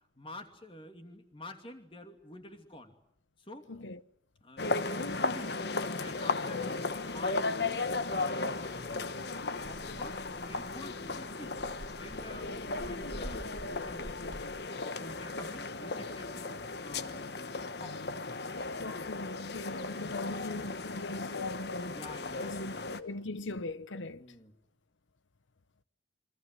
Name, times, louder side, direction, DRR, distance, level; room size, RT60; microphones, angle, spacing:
voice 1, 0.2-2.9 3.4-3.7 4.4-5.6 5.9-11.6 12.0-14.5 14.8-16.6 16.8-18.0 21.9-23.3 24.2-24.5, left 1 dB, 30° left, 2.7 m, -49 dB
voice 2, 3.7-4.0 18.8-22.0 22.4-24.2, left 2 dB, 90° left, 1.0 m, -40 dB
sound 1, 4.6-23.0, left 3 dB, 60° left, 1.2 m, -36 dB
sound 2, 9.6-14.6, equal, 30° right, 2.4 m, -48 dB
27.5 x 24.0 x 7.8 m
head